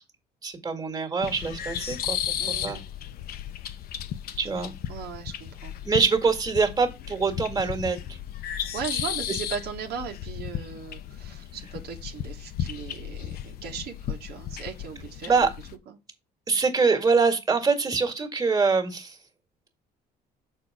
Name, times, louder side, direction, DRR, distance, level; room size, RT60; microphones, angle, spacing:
voice 1, 0.4-2.2 2.6-2.8 4.4-4.7 5.8-8.0 15.3-15.5 16.5-19.2, right 4 dB, 20° right, 2.0 m, -24 dB
sound 1, 1.2-15.8, left 10 dB, 65° left, 0.8 m, -35 dB
voice 2, 2.4-2.9 4.9-5.8 8.7-15.5 15.9-16.0, right 7 dB, 75° right, 1.6 m, -37 dB
6.7 x 4.7 x 4.9 m
cardioid pair, 110°, 17 cm